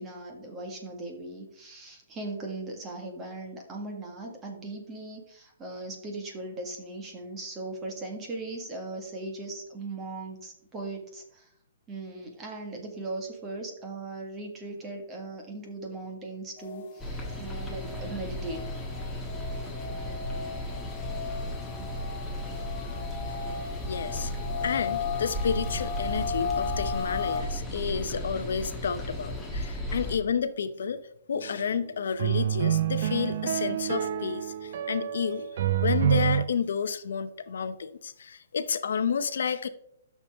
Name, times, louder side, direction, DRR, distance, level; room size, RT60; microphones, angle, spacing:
voice 1, 0.0-11.5 11.9-18.7, right 2 dB, 15° right, 2 dB, 1.7 m, -38 dB
sound 1, 16.6-27.4, left 6 dB, 35° left, 1.2 m, -36 dB
sound 2, 17.0-30.2, equal, 5° left, 1.4 m, -35 dB
voice 2, 23.9-24.3 24.6-31.0 31.3-39.7, left 6 dB, 70° left, 12 dB, 0.7 m, -31 dB
sound 3, 31.3-31.5 32.2-36.4, right 10 dB, 50° right, 0.5 m, -27 dB
12.0 x 6.8 x 3.5 m, 0.72 s
hypercardioid pair, 165°, 0 cm